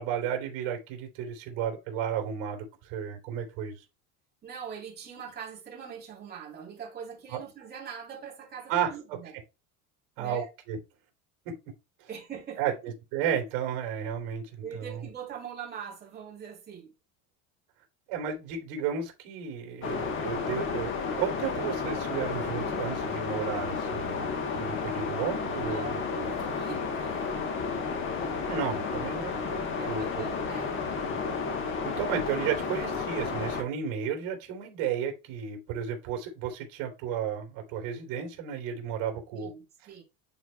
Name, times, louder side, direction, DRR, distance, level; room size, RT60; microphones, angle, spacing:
voice 1, 0.0-3.8 7.3-7.4 8.7-9.2 10.2-10.8 11.4-11.5 12.0-12.1 12.6-14.9 18.1-20.9 21.2-24.3 24.5-25.9 28.5-30.2 31.8-39.5, right 8 dB, 60° right, 3.3 m, -33 dB
voice 2, 4.4-9.3 10.2-10.5 12.1-12.7 14.6-16.9 25.6-27.3 29.7-30.7 39.3-40.0, right 7 dB, 25° right, 3.6 m, -42 dB
sound 1, 19.8-33.6, left 5 dB, 30° left, 1.3 m, -32 dB
11.0 x 4.5 x 2.3 m
cardioid pair, 165°, 39 cm